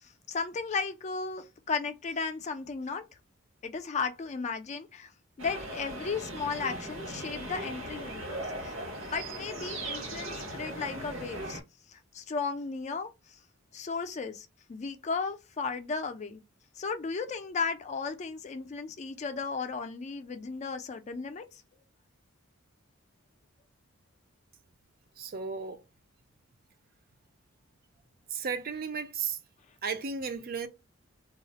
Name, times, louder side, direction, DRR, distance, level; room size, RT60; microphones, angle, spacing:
voice 1, 0.0-3.0 3.6-5.1 5.4-8.7 9.1-11.6 11.9-13.4 13.7-16.4 16.8-21.6, left 5 dB, 35° left, 0.4 m, -35 dB
sound 1, 5.4-11.6, right 1 dB, 85° right, 0.9 m, -38 dB
voice 2, 25.2-25.8 28.3-29.4 29.8-30.7, right 5 dB, 50° right, 0.4 m, -34 dB
2.3 x 2.0 x 3.9 m
head